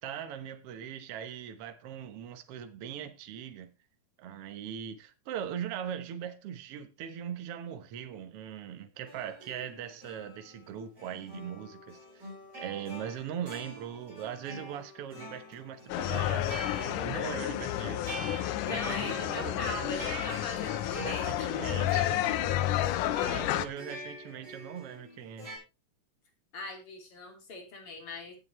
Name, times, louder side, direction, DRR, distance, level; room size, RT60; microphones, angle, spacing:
voice 1, 0.0-3.7 4.2-12.3 12.6-18.0 18.4-20.1 20.9-22.4 23.2-25.5, right 9 dB, 60° right, 1.9 m, -40 dB
sound 1, 9.1-25.6, right 1 dB, 30° right, 8.0 m, -46 dB
sound 2, 15.9-23.7, left 13 dB, 85° left, 2.3 m, -31 dB
voice 2, 18.6-21.7 26.5-28.4, left 3 dB, 45° left, 3.6 m, -40 dB
17.0 x 7.7 x 3.2 m
omnidirectional pair, 3.5 m